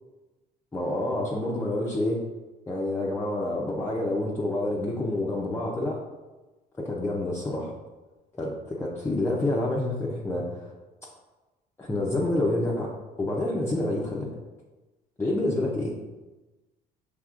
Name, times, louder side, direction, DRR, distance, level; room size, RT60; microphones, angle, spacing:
voice 1, 0.7-2.2 2.7-6.0 6.8-7.7 8.4-10.7 11.8-12.9 13.2-14.3 15.2-15.9, left 1 dB, 15° left, -4 dB, 0.6 m, -28 dB
6.2 x 3.4 x 2.4 m, 1.2 s
cardioid pair, 110°, 17 cm